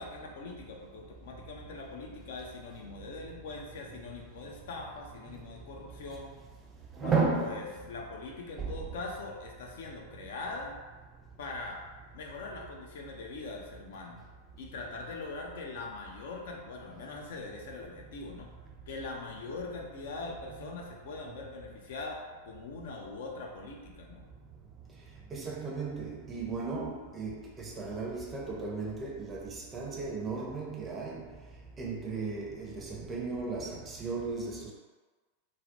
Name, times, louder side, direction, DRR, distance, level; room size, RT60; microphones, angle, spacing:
voice 1, 0.0-6.3 7.0-7.1 7.4-10.8 11.4-11.8 12.1-14.2 14.6-18.5 18.9-24.2, left 3 dB, 55° left, 0 dB, 0.4 m, -42 dB
voice 2, 7.0-7.7 8.6-8.7 25.3-31.3 31.8-34.7, right 4 dB, 20° right, -2 dB, 0.4 m, -34 dB
2.3 x 2.1 x 2.6 m, 1.3 s
figure-of-eight pair, 90°, 0 cm